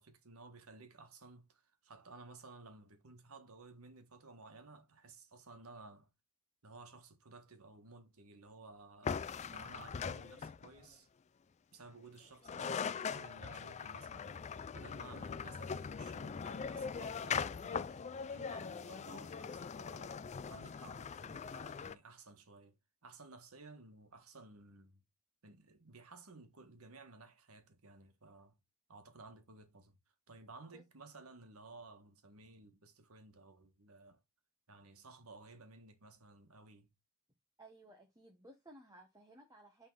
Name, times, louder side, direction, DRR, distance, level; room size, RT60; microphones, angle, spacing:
voice 1, 0.0-6.1 6.6-11.1 11.7-14.4 14.7-22.8 23.0-25.0 25.4-28.6 28.9-30.0 30.3-34.2 34.7-36.9, right 3 dB, 80° right, 1.5 m, -56 dB
sound 1, 9.0-10.8 12.2-12.3 12.4-21.9, left 6 dB, 30° left, 0.4 m, -41 dB
voice 2, 37.6-39.9, right 1 dB, 15° right, 1.3 m, -58 dB
9.5 x 3.9 x 3.9 m
head